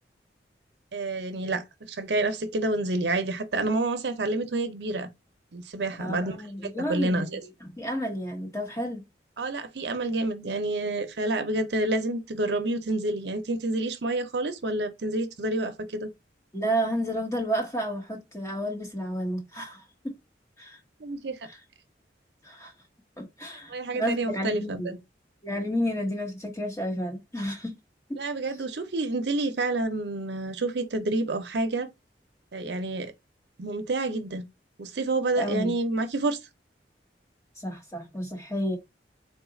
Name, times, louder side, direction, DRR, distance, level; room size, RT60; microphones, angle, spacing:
voice 1, 0.9-5.1 5.5-6.4 6.6-7.4 9.4-16.1 21.0-21.5 23.7-25.0 28.2-31.9 32.5-33.1 33.6-34.4 34.8-36.4, right 2 dB, 70° right, 0.7 m, -28 dB
voice 2, 6.0-7.4 7.8-9.0 16.5-20.1 20.6-20.8 21.5-21.6 22.4-22.7 23.2-24.9 25.4-27.7 28.1-28.2 35.3-35.7 37.6-38.8, equal, 15° left, 1.0 m, -31 dB
3.8 x 2.3 x 3.8 m
head